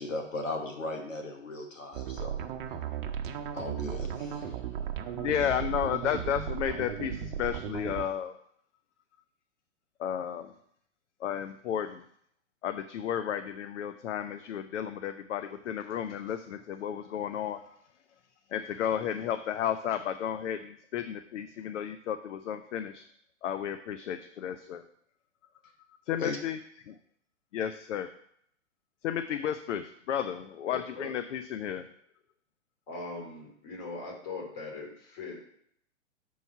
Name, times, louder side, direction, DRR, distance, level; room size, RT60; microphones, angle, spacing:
voice 1, 0.0-2.4 3.5-4.6 26.2-26.4, left 2 dB, 85° left, 4 dB, 1.3 m, -37 dB
sound 1, 1.9-8.1, right 9 dB, 45° right, 0.8 m, -36 dB
voice 2, 5.1-8.3 10.0-10.5 11.2-12.0 12.6-17.6 18.5-23.0 23.4-24.8 26.1-26.6 26.9-27.0 27.5-28.1 29.0-31.9, left 9 dB, 70° left, 10 dB, 0.6 m, -33 dB
voice 3, 30.7-31.2 32.9-35.4, left 3 dB, 40° left, 0 dB, 2.7 m, -40 dB
6.8 x 4.7 x 5.6 m, 0.69 s
hypercardioid pair, 120°, 38 cm